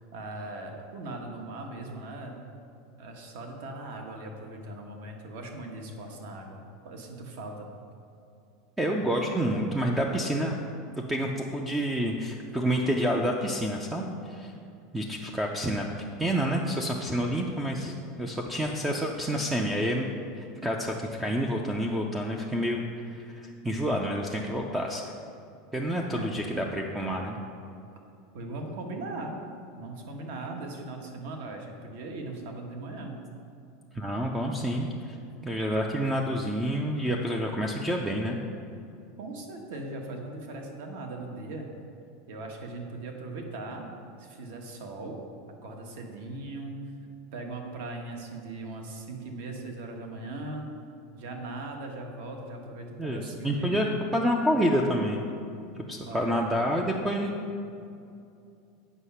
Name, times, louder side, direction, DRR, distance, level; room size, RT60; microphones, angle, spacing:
voice 1, 0.1-2.4 3.0-7.7 26.1-26.5 28.3-29.4 29.7-33.2 39.2-41.7 42.3-43.8 44.2-45.2 45.6-46.9 47.3-50.7 51.1-54.0 56.1-56.6, right 2 dB, 65° right, 2 dB, 1.3 m, -39 dB
voice 2, 8.8-10.5 11.1-14.5 14.9-15.9 16.2-20.1 20.3-25.0 25.7-27.4 33.9-35.2 35.4-38.4 53.0-53.9 54.1-55.2 55.9-57.3, equal, 5° right, 1 dB, 0.4 m, -28 dB
8.1 x 5.7 x 5.5 m, 2.5 s
supercardioid pair, 170°, 0 cm